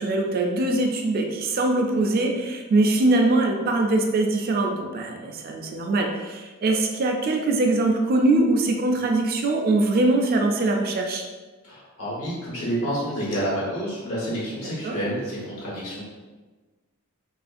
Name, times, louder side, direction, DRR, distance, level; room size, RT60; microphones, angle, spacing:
voice 1, 0.0-11.2 14.8-15.0, right 2 dB, 45° right, 3 dB, 0.3 m, -22 dB
voice 2, 11.6-16.0, equal, 75° left, -7 dB, 1.2 m, -29 dB
3.0 x 2.4 x 2.5 m, 1.3 s
head